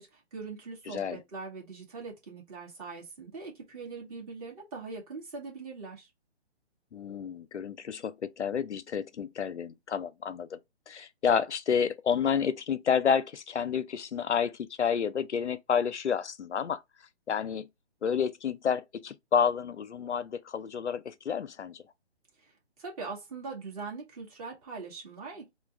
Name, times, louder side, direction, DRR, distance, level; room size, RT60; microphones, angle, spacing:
voice 1, 0.0-6.1 22.4-25.5, right 4 dB, 35° right, 1.9 m, -42 dB
voice 2, 0.9-1.2 6.9-10.6 10.9-16.8 17.3-17.7 18.0-21.8, left 7 dB, 85° left, 0.6 m, -30 dB
3.8 x 2.3 x 3.3 m
figure-of-eight pair, 145°, 34 cm